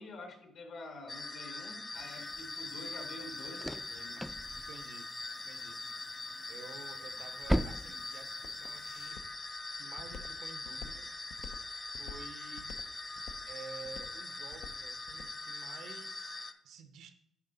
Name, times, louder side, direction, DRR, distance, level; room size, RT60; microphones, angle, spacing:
voice 1, 0.0-4.3, left 2 dB, 70° left, 3 dB, 1.7 m, -48 dB
sound 1, 1.1-16.5, left 2 dB, 25° left, 0.8 m, -42 dB
sound 2, 1.9-9.1, equal, ahead, 0.4 m, -40 dB
voice 2, 4.5-5.1 5.4-5.8 6.5-9.2 9.8-11.1 12.0-12.8 13.4-17.1, right 5 dB, 85° right, 8 dB, 0.8 m, -51 dB
Walk footsteps, 7.4-15.4, left 5 dB, 85° left, 0.6 m, -50 dB
10.5 x 3.8 x 3.9 m, 0.73 s
cardioid pair, 90°, 0 cm